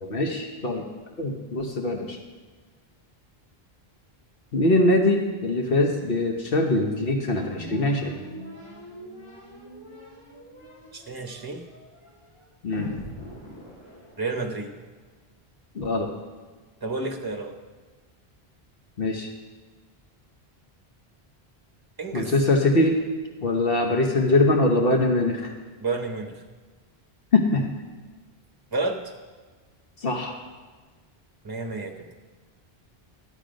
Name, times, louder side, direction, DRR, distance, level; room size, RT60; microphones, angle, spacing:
voice 1, 0.0-0.9 1.2-2.2 4.5-8.2 12.6-12.9 15.7-16.1 19.0-19.3 22.1-23.0 23.4-25.5 27.3-27.7 30.0-30.3, left 2 dB, 65° left, 2 dB, 1.3 m, -22 dB
sound 1, 7.2-14.7, equal, 30° left, 4.1 m, -43 dB
voice 2, 10.9-11.6 14.2-14.7 16.8-17.6 22.0-22.3 25.8-26.4 28.7-29.0 31.4-31.9, right 3 dB, 20° right, 4 dB, 1.0 m, -30 dB
12.0 x 8.3 x 5.2 m, 1.4 s
omnidirectional pair, 1.1 m